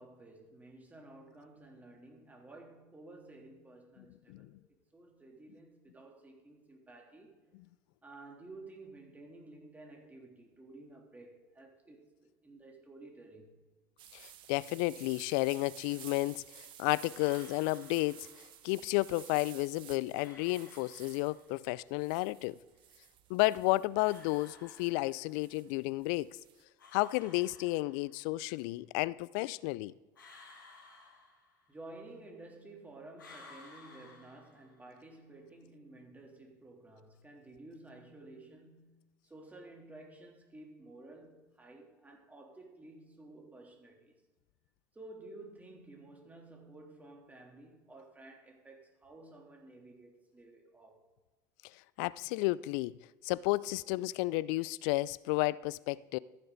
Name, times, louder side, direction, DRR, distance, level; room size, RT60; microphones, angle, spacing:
voice 1, 0.0-4.6 4.9-7.4 8.0-13.6 31.7-44.1 44.9-51.0, right 2 dB, 15° right, 3.2 m, -53 dB
voice 2, 4.0-4.5 14.1-22.6 23.3-26.4 26.9-29.9 52.0-53.0 53.2-56.2, left 20 dB, 65° left, 0.4 m, -32 dB
sound 1, 14.0-26.6, right 11 dB, 50° right, 1.2 m, -54 dB
sound 2, 17.1-18.6 20.1-21.6 23.9-25.5 26.8-28.3 30.1-31.9 33.2-35.0, left 3 dB, 90° left, 2.9 m, -57 dB
15.0 x 9.9 x 4.0 m
hypercardioid pair, 70°, 10 cm